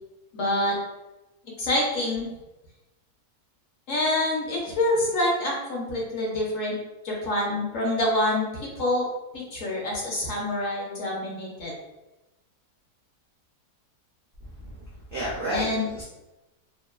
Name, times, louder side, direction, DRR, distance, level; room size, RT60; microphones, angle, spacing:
voice 1, 0.3-0.8 1.6-2.3 3.9-6.8 7.0-9.1 9.3-11.7 15.5-16.0, left 1 dB, 60° left, -4 dB, 1.0 m, -26 dB
voice 2, 14.4-16.0, right 1 dB, 75° right, -6 dB, 0.5 m, -32 dB
2.9 x 2.2 x 2.2 m, 1.0 s
omnidirectional pair, 1.7 m